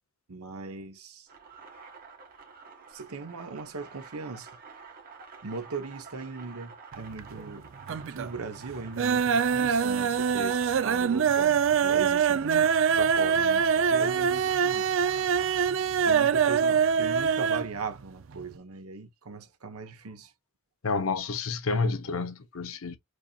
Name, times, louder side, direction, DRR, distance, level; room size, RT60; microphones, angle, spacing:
voice 1, 0.3-1.3 2.9-4.5 5.4-15.0 16.0-20.3, right 4 dB, 85° right, 0.9 m, -39 dB
sound 1, 1.3-16.5, right 5 dB, 40° right, 1.3 m, -49 dB
sound 2, 6.9-7.5 7.8-8.4 8.7-17.7 18.0-18.1 18.4-18.5, right 7 dB, 60° right, 0.4 m, -24 dB
voice 2, 20.8-23.0, left 4 dB, 70° left, 0.7 m, -29 dB
4.7 x 2.8 x 2.3 m
head